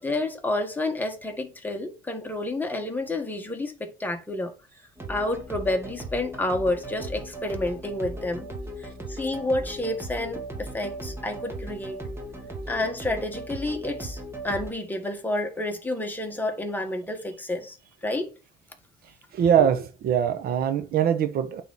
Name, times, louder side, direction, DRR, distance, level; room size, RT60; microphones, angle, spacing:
voice 1, 0.0-4.5 5.1-8.5 8.8-12.0 12.7-18.3, left 2 dB, 10° left, 1.6 m, -29 dB
sound 1, 5.0-14.7, right 1 dB, 15° right, 1.7 m, -37 dB
voice 2, 19.3-21.6, right 8 dB, 65° right, 1.0 m, -22 dB
8.3 x 3.8 x 4.2 m
cardioid pair, 110°, 17 cm